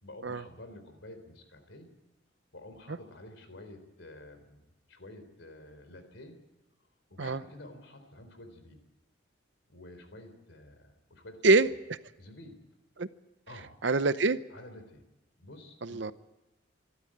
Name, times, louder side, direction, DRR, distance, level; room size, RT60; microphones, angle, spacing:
voice 1, 0.0-1.9 2.5-6.4 7.1-8.8 9.7-11.4 12.2-12.6 13.5-13.7 14.5-15.0 15.4-16.1, left 1 dB, 70° left, 8 dB, 3.8 m, -50 dB
voice 2, 11.4-12.0 13.0-13.1 13.8-14.4 15.8-16.1, right 3 dB, 60° right, 14 dB, 0.7 m, -25 dB
25.5 x 13.0 x 8.7 m, 1.0 s
head